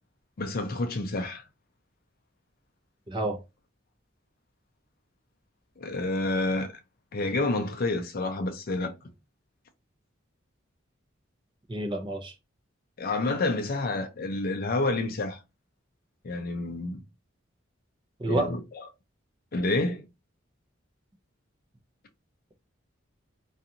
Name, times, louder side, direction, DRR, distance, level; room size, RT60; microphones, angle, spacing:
voice 1, 0.4-1.4 5.8-6.7 7.1-8.9 13.0-15.4 16.2-17.0 18.3-18.6 19.5-20.0, left 2 dB, 50° left, 0.5 m, -29 dB
voice 2, 3.1-3.4 11.7-12.3 18.2-18.5, right 1 dB, 25° right, 0.6 m, -29 dB
2.5 x 2.4 x 2.8 m
head